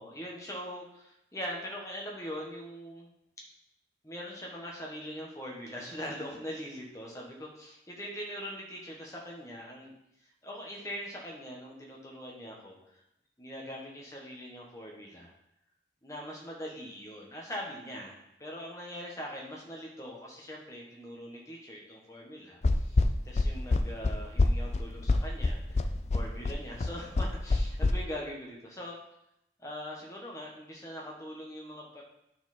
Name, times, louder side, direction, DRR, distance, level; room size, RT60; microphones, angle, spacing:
voice 1, 0.0-3.1 4.0-10.0 10.4-13.0 13.4-15.3 16.0-29.0 29.6-32.0, equal, 15° left, -2 dB, 1.5 m, -42 dB
sound 1, 22.6-27.9, left 3 dB, 35° left, 0.4 m, -25 dB
9.2 x 4.5 x 4.3 m, 0.81 s
head